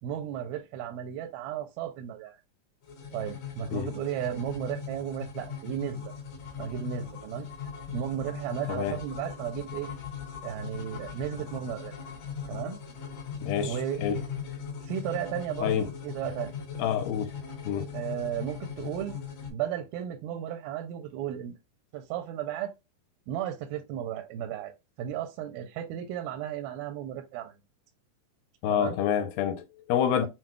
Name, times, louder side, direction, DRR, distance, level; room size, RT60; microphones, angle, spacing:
voice 1, 0.0-2.4 3.1-6.0 6.6-7.5 7.9-9.9 10.4-11.9 12.5-12.8 13.6-14.0 14.8-16.6 17.9-19.2 19.5-21.6 21.9-22.7 23.3-24.7 25.0-27.5 28.7-29.0 30.2-30.3, right 10 dB, 85° right, 2.4 m, -34 dB
sound 1, 2.8-19.5, left 7 dB, 65° left, 3.2 m, -39 dB
voice 2, 13.4-14.2 15.6-15.9 16.8-17.3 17.6-17.9 28.6-30.3, left 9 dB, 80° left, 2.5 m, -28 dB
7.3 x 2.7 x 2.3 m
omnidirectional pair, 4.3 m